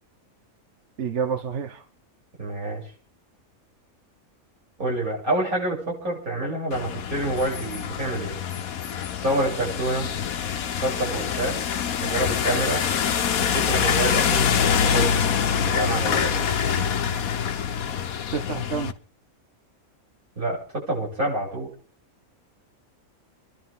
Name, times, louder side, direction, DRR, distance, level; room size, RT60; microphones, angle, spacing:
voice 1, 1.0-1.8 18.3-18.9, right 6 dB, 55° right, 6 dB, 1.4 m, -28 dB
voice 2, 2.4-2.8 4.8-8.4 9.2-10.1 10.8-11.6 12.0-12.8 13.5-16.5 20.4-21.7, right 1 dB, 90° right, -4 dB, 8.3 m, -27 dB
sound 1, 6.7-18.9, left 7 dB, 80° left, 1.4 m, -25 dB
30.0 x 11.5 x 3.7 m, 0.38 s
omnidirectional pair, 1.5 m